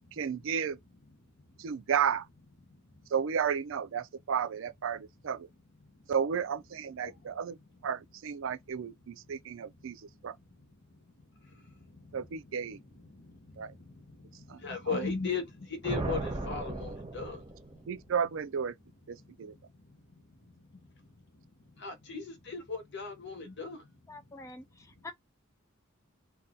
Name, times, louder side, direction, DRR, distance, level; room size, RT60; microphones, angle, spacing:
voice 1, 0.1-0.8 1.6-2.3 3.1-5.5 6.1-7.6 7.8-10.3 12.1-12.8 13.6-13.7 14.5-14.6 14.9-15.0 17.9-18.8 19.1-19.5, right 7 dB, 65° right, 0.4 m, -33 dB
voice 2, 1.2-1.9 2.7-3.1 5.8-5.9 7.0-7.3 9.4-17.9 19.2-24.5 25.0-25.1, left 4 dB, 60° left, 1.1 m, -41 dB
sound 1, 15.8-18.1, right 2 dB, 25° right, 0.8 m, -36 dB
voice 3, 24.1-25.1, left 3 dB, 15° left, 0.4 m, -46 dB
2.7 x 2.3 x 3.7 m
head